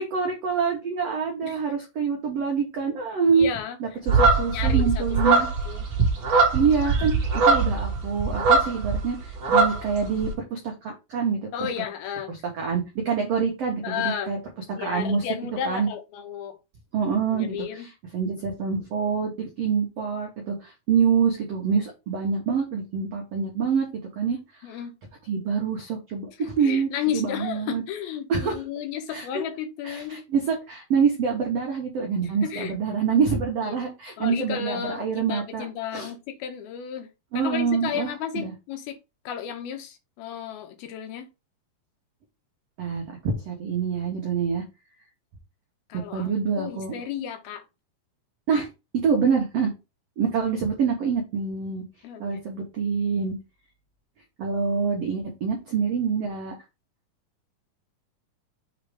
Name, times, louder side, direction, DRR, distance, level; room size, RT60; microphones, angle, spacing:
voice 1, 0.0-3.5 3.8-5.5 6.5-7.1 7.4-11.7 12.3-14.4 14.7-15.2 15.6-15.9 16.9-23.9 24.1-24.8 25.3-27.8 28.3-28.6 29.1-29.4 29.8-36.1 37.3-38.5 42.8-44.6 45.9-46.9 48.5-48.7 49.0-49.7 50.2-51.8 52.2-53.4 54.4-56.5, right 6 dB, 90° right, 1.3 m, -26 dB
voice 2, 3.3-3.8 4.5-5.9 11.5-12.3 13.8-14.3 14.8-16.6 17.3-17.9 24.6-24.9 26.4-30.2 32.2-32.7 33.6-33.8 34.2-37.1 37.3-39.0 39.3-41.3 45.9-46.3 46.6-47.6 52.0-52.3, left 9 dB, 75° left, 2.7 m, -33 dB
sound 1, 4.1-9.0 9.3-10.3, right 4 dB, 45° right, 2.0 m, -21 dB
6.6 x 3.0 x 4.9 m
omnidirectional pair, 4.5 m